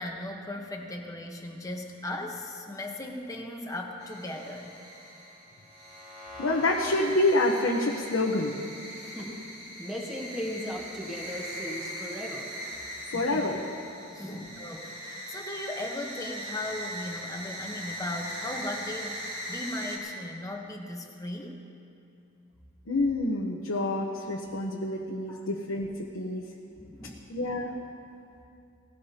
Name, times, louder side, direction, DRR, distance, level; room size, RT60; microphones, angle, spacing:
voice 1, 0.0-4.8 9.0-9.1 13.1-13.5 14.1-21.6 25.3-25.5 26.8-27.2, left 1 dB, 15° left, 2 dB, 1.1 m, -38 dB
sound 1, 4.0-20.0, equal, 30° right, 2.7 m, -40 dB
voice 2, 6.4-8.5 13.1-13.6 22.9-26.5 27.3-27.7, left 2 dB, 80° left, -1 dB, 1.0 m, -27 dB
voice 3, 9.8-12.5 14.2-14.4, equal, 5° right, -4 dB, 1.6 m, -37 dB
18.5 x 17.5 x 2.9 m, 2.6 s
head